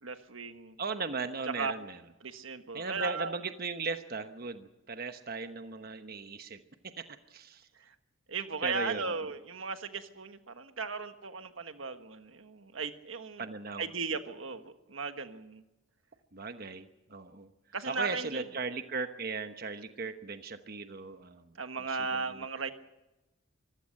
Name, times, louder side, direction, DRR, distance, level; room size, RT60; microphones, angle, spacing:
voice 1, 0.0-0.8 1.4-1.7 2.2-3.4 7.7-7.9 8.3-13.4 13.8-15.6 17.7-18.5 21.6-22.7, right 4 dB, 90° right, 8 dB, 1.5 m, -36 dB
voice 2, 0.8-2.0 2.7-6.6 7.0-7.1 7.3-7.7 8.6-9.0 13.4-13.9 16.3-17.5 17.9-21.5 21.9-22.4, right 4 dB, 50° right, 8 dB, 1.1 m, -37 dB
24.5 x 16.0 x 6.6 m, 0.98 s
head